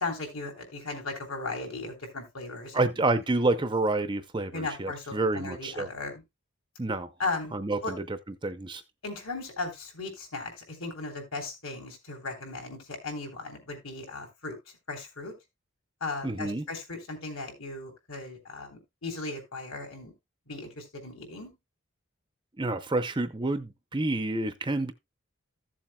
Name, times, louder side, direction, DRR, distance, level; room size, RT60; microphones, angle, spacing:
voice 1, 0.0-2.9 4.5-6.2 7.2-7.5 7.8-8.0 9.0-14.5 14.9-15.3 16.0-20.1 20.5-21.5, left 3 dB, 70° left, 3.4 m, -37 dB
voice 2, 2.7-5.9 6.8-7.1 7.5-8.2 8.4-8.8 16.2-16.6 22.6-24.9, right 2 dB, 20° right, 0.6 m, -28 dB
15.0 x 7.3 x 2.2 m
head